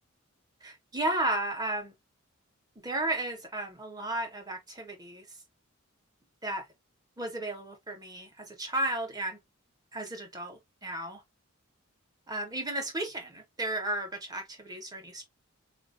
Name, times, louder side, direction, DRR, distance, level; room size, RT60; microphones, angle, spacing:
voice 1, 0.6-1.9 2.8-5.4 6.4-6.6 7.2-9.4 9.9-11.2 12.3-15.2, right 1 dB, 15° right, 0.9 m, -34 dB
4.1 x 2.5 x 2.5 m
head